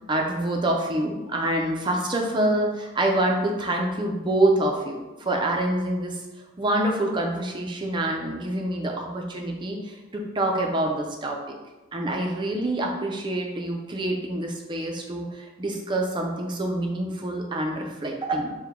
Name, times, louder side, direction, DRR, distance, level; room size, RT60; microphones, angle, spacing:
voice 1, 0.1-6.2 6.6-11.5 11.9-18.5, right 1 dB, 25° right, 1 dB, 0.4 m, -26 dB
4.7 x 2.2 x 3.5 m, 1.1 s
head